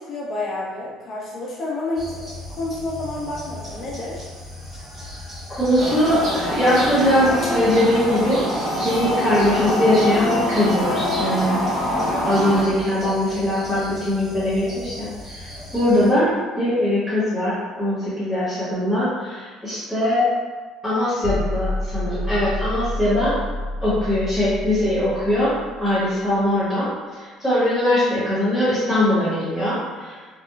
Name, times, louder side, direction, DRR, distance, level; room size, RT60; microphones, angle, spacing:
voice 1, 0.0-2.1 2.5-4.2, left 2 dB, 35° left, -5 dB, 0.8 m, -29 dB
sound 1, 1.9-16.1, left 1 dB, 25° right, 1.5 m, -38 dB
voice 2, 5.5-8.4 8.8-11.6 12.2-16.3 16.6-20.3 20.8-23.4 23.8-25.5 25.8-26.9 27.2-30.1, left 1 dB, ahead, -12 dB, 1.1 m, -21 dB
sound 2, 5.8-12.6, left 1 dB, 45° right, 0.8 m, -24 dB
sound 3, 21.2-26.3, left 1 dB, 55° left, 1.1 m, -29 dB
2.9 x 2.2 x 2.3 m, 1.4 s
cardioid pair, 125°, 0 cm